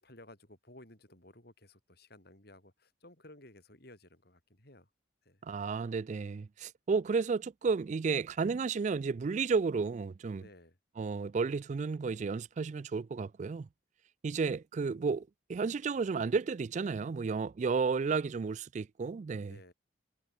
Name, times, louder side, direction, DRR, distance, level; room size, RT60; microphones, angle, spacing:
voice 1, 0.0-4.9 5.2-5.4 10.3-10.8 19.4-19.7, left 1 dB, 55° left, 5.9 m, -56 dB
voice 2, 5.4-10.4 11.0-13.7 14.2-19.6, right 5 dB, 40° right, 0.3 m, -32 dB
head